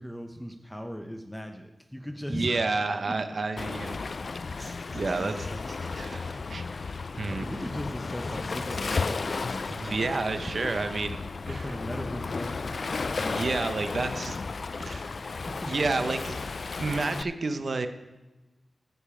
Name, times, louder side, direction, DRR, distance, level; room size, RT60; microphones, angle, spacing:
voice 1, 0.0-2.8 3.1-3.2 4.5-4.8 5.1-5.6 7.3-9.7 10.0-10.2 11.5-13.2 15.2-15.7, equal, 5° left, 4 dB, 0.8 m, -38 dB
sound 1, 1.8-1.9 2.1-2.3 2.7-4.3 4.6-7.7 8.0-11.2 11.6-12.2, right 1 dB, 25° right, 1.6 m, -50 dB
voice 2, 2.3-4.0 4.9-5.6 5.9-6.7 7.1-7.5 9.7-11.2 11.5-11.6 13.3-14.4 14.8-15.1 15.6-16.5 16.8-17.9, right 3 dB, 60° right, 9 dB, 0.8 m, -30 dB
Waves surf, 3.6-17.2, left 4 dB, 60° left, 0.3 m, -34 dB
15.0 x 5.4 x 5.0 m, 1.1 s
wide cardioid pair, 70°, 0 cm